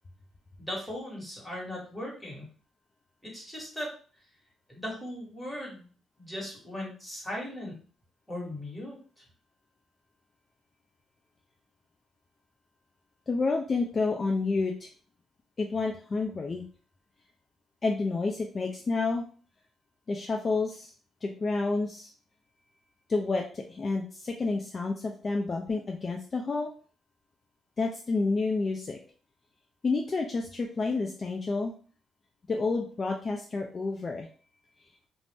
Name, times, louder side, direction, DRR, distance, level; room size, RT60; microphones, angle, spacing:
voice 1, 0.6-2.5 3.2-3.9 4.7-5.9 6.2-7.8 8.3-9.0, left 1 dB, 5° left, -3 dB, 1.3 m, -38 dB
voice 2, 13.3-14.9 15.6-16.6 17.8-19.2 20.1-20.9 21.2-22.1 23.1-26.7 27.8-29.0 29.8-31.7 32.5-34.3, left 3 dB, 35° left, 2 dB, 0.4 m, -29 dB
2.5 x 2.0 x 3.4 m, 0.40 s
cardioid pair, 90°, 0 cm